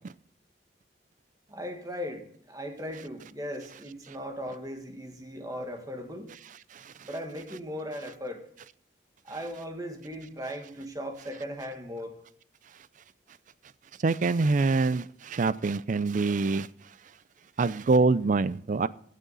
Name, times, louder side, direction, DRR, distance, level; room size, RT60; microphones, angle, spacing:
voice 1, 1.5-6.3 7.0-8.4 9.2-12.2, equal, 20° right, 1.5 m, -38 dB
voice 2, 14.0-16.7 17.6-18.9, right 3 dB, 45° right, 0.4 m, -25 dB
17.0 x 6.5 x 4.0 m
head